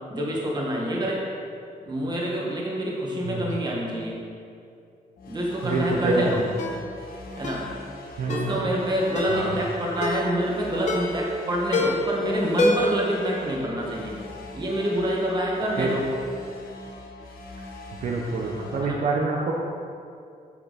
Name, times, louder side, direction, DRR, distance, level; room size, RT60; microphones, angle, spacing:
voice 1, 0.1-1.2 1.8-4.2 5.3-6.4 7.4-7.6 8.3-14.2 14.5-16.1 18.8-19.0, equal, 30° right, -3 dB, 1.8 m, -27 dB
sound 1, 5.2-18.9, left 2 dB, 80° left, 1.4 m, -42 dB
voice 2, 5.6-6.3 8.2-8.6 9.3-9.5 15.8-16.0 18.0-19.5, right 3 dB, 55° right, -2 dB, 0.9 m, -26 dB
Ringtone, 6.6-6.8 7.4-7.7 8.3-8.5 9.1-9.4 10.0-10.3 10.9-11.2 11.7-12.1 12.6-13.0 13.3-13.4, left 2 dB, 55° left, 1.2 m, -26 dB
8.6 x 8.4 x 4.2 m, 2.4 s
wide cardioid pair, 165°, 15 cm